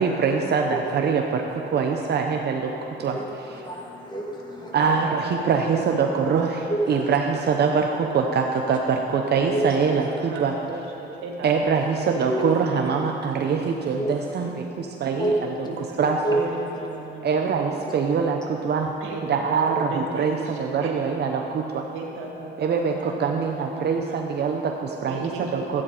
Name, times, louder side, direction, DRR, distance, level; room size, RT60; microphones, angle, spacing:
voice 1, 0.0-3.6 4.7-10.5 11.4-16.2 17.2-18.9 19.3-21.9 22.6-25.8, right 5 dB, 55° right, 2 dB, 0.7 m, -24 dB
voice 2, 3.1-4.8 6.7-7.2 9.5-9.6 12.3-12.4 14.0-14.5 15.2-15.3 16.0-16.4, right 1 dB, 20° left, -2 dB, 2.0 m, -29 dB
voice 3, 4.8-5.3 5.7-6.5 6.9-7.1 9.3-11.5 15.6-17.5 19.0-19.6 19.9-21.1 21.9-24.2 25.1-25.8, right 3 dB, 85° right, -1 dB, 1.9 m, -36 dB
12.0 x 8.5 x 4.9 m, 3.0 s
cardioid pair, 90°, 20 cm